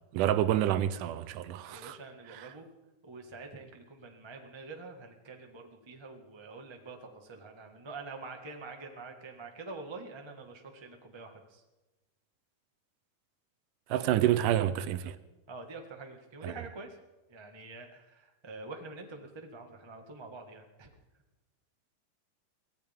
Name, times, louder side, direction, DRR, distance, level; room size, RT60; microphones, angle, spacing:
voice 1, 0.1-2.0 13.9-15.2 16.4-16.5, right 12 dB, 80° right, 2.2 m, -28 dB
voice 2, 1.7-2.6 3.0-11.6 13.9-14.5 15.5-17.0 17.3-20.9, right 3 dB, 20° right, 0.6 m, -46 dB
23.5 x 17.0 x 3.6 m
omnidirectional pair, 3.8 m